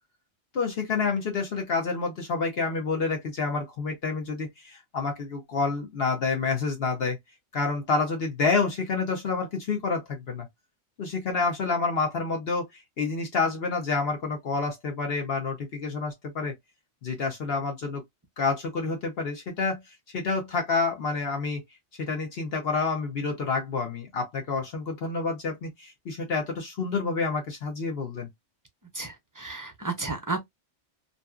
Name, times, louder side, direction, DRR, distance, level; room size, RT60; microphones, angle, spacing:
voice 1, 0.5-7.2 7.5-10.5 11.0-16.5 17.0-18.0 18.4-19.8 20.1-21.6 22.0-28.3, left 4 dB, 60° left, 1.0 m, -28 dB
voice 2, 28.9-30.4, right 3 dB, 30° right, 0.4 m, -32 dB
2.6 x 2.5 x 2.3 m
omnidirectional pair, 1.2 m